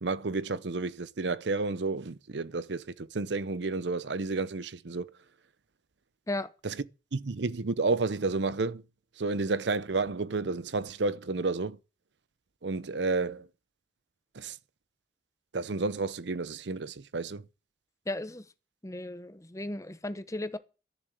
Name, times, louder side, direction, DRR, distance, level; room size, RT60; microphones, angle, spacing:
voice 1, 0.0-5.1 6.6-6.7 7.1-8.8 9.2-11.8 12.6-13.5 14.3-14.6 15.5-17.4, right 3 dB, 75° right, 0.7 m, -31 dB
voice 2, 18.1-18.4 18.8-20.6, left 1 dB, 15° left, 1.0 m, -35 dB
13.0 x 7.4 x 9.0 m
head